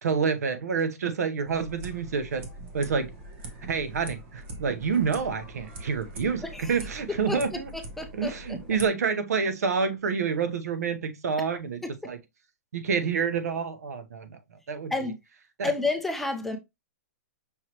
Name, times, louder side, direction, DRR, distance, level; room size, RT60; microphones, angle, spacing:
voice 1, 0.0-2.5 2.7-3.1 3.7-7.7 8.1-12.2 12.7-14.4 14.7-14.9 15.6-15.7, right 5 dB, 85° right, 0.8 m, -28 dB
sound 1, 1.4-8.9, right 1 dB, 50° right, 1.2 m, -42 dB
voice 2, 7.7-8.8 14.9-15.2 15.6-16.6, left 3 dB, 5° left, 0.4 m, -30 dB
5.6 x 3.0 x 2.9 m
hypercardioid pair, 165°, 8 cm